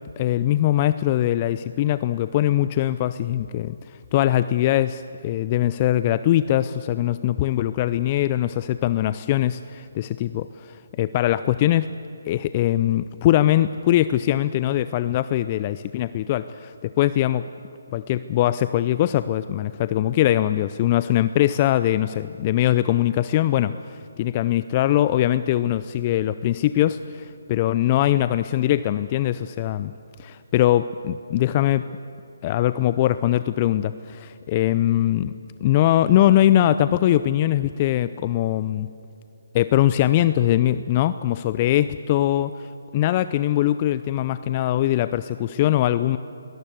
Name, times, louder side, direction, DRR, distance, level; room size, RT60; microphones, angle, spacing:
voice 1, 0.2-3.8 4.1-11.9 12.3-17.5 17.9-29.9 30.2-31.9 32.4-35.3 35.6-38.9 39.5-46.2, left 13 dB, 30° left, 14 dB, 0.5 m, -21 dB
22.0 x 19.0 x 8.2 m, 2.6 s
figure-of-eight pair, 145°, 0 cm